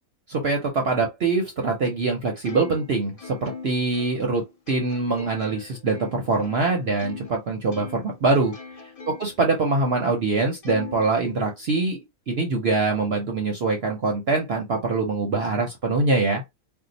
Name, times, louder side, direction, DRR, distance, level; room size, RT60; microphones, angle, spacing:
voice 1, 0.3-8.5 9.1-12.0 12.3-16.4, right 3 dB, 55° right, 0.7 m, -24 dB
Plucked string instrument, 2.4-7.4 7.7-9.4 9.9-10.0 10.6-11.8, left 5 dB, 55° left, 0.4 m, -40 dB
2.7 x 2.1 x 3.9 m
omnidirectional pair, 1.6 m